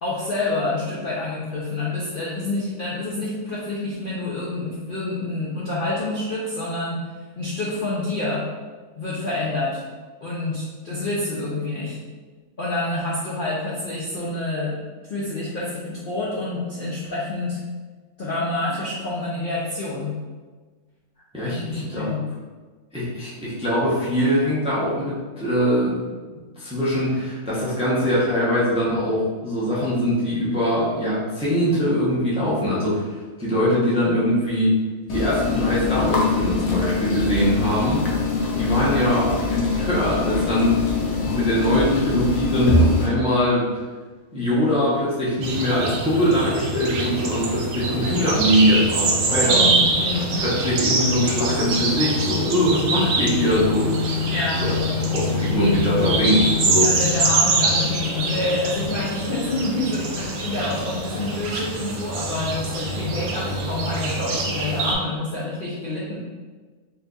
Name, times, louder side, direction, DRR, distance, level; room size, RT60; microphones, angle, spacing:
voice 1, 0.0-7.0 7.4-8.5 8.9-9.8 10.2-12.0 12.6-14.8 15.1-17.6 18.2-20.2 21.4-22.3 49.4-50.4 54.3-54.6 56.7-66.2, left 2 dB, 55° left, -7 dB, 0.6 m, -27 dB
voice 2, 21.3-22.1 22.9-26.0 26.6-33.0 33.4-34.8 35.1-38.0 38.5-43.7 44.3-49.7 50.2-54.3 54.6-56.9, equal, 5° right, -8 dB, 0.5 m, -22 dB
sound 1, 35.1-43.1, left 3 dB, 75° left, 1.1 m, -23 dB
sound 2, 45.4-64.9, right 1 dB, 75° right, 1.0 m, -24 dB
4.4 x 2.6 x 2.3 m, 1.4 s
omnidirectional pair, 1.5 m